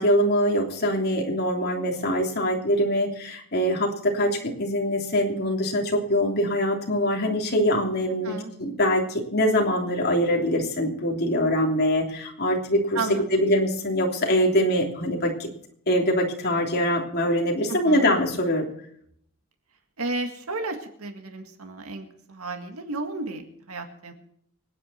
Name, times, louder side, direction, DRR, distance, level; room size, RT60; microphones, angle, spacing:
voice 1, 0.0-8.3 8.6-13.0 13.3-15.5 15.9-18.6, equal, 45° left, 0 dB, 3.2 m, -23 dB
voice 2, 12.9-13.5 17.7-18.1 20.0-24.1, right 3 dB, 75° right, 5 dB, 1.9 m, -33 dB
25.5 x 9.5 x 4.4 m, 0.67 s
head